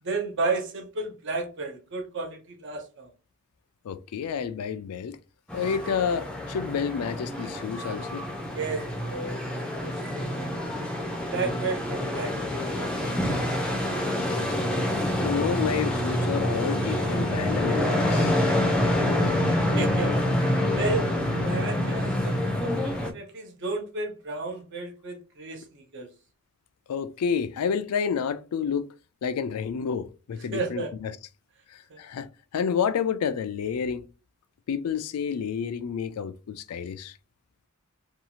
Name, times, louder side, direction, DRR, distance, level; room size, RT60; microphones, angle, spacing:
voice 1, 0.0-3.1 8.5-9.4 9.7-10.6 11.3-14.0 19.0-19.2 19.8-20.1 20.8-26.1 30.5-30.9 31.9-32.0, right 3 dB, 55° right, 0.7 m, -33 dB
voice 2, 3.8-5.2 5.5-8.2 15.2-18.3 26.9-28.9 29.2-31.2 31.7-32.3 32.5-34.0 34.7-37.2, left 7 dB, 85° left, 0.3 m, -29 dB
sound 1, 5.5-23.1, left 1 dB, 5° left, 0.5 m, -27 dB
2.7 x 2.4 x 2.8 m
head